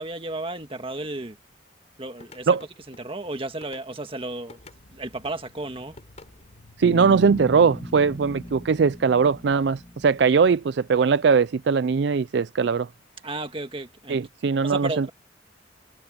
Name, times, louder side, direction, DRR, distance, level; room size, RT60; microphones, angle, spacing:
voice 1, 0.0-1.4 2.0-2.6 2.9-4.6 4.9-6.0 13.2-14.2 14.6-15.1, right 2 dB, 30° right, 1.8 m, -33 dB
sound 1, 2.1-4.8 5.3-7.2, left 2 dB, 35° left, 5.9 m, -51 dB
sound 2, 4.6-10.6, left 1 dB, 65° left, 1.7 m, -54 dB
Bass guitar, 6.8-10.9, left 1 dB, 10° left, 0.4 m, -38 dB
voice 2, 6.8-12.9 14.1-15.1, right 5 dB, 60° right, 0.4 m, -20 dB
head